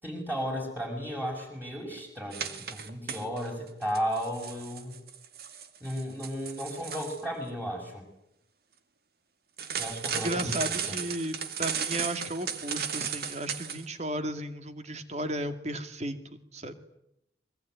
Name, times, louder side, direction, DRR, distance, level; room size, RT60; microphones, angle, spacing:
voice 1, 0.0-5.0 5.8-8.1 9.8-11.0, equal, 10° right, 0 dB, 6.5 m, -34 dB
sound 1, 2.3-3.5 3.8-7.2 9.6-13.8, right 7 dB, 55° right, 2.2 m, -35 dB
voice 2, 10.1-16.2 16.5-16.8, right 1 dB, 40° right, 9 dB, 2.3 m, -34 dB
25.0 x 23.0 x 9.5 m, 0.82 s
head